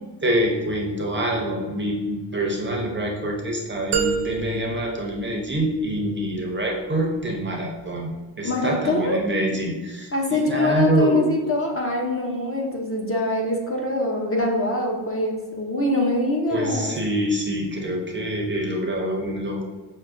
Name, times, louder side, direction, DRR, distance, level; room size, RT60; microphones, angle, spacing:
voice 1, 0.2-11.3 16.5-19.6, right 1 dB, 25° right, 0 dB, 0.6 m, -25 dB
sound 1, 3.9-6.0, right 7 dB, 65° right, 0.7 m, -28 dB
voice 2, 8.4-9.2 10.1-17.0, left 2 dB, 30° left, 0 dB, 0.6 m, -24 dB
6.0 x 2.1 x 2.5 m, 1.3 s
cardioid pair, 95°, 48 cm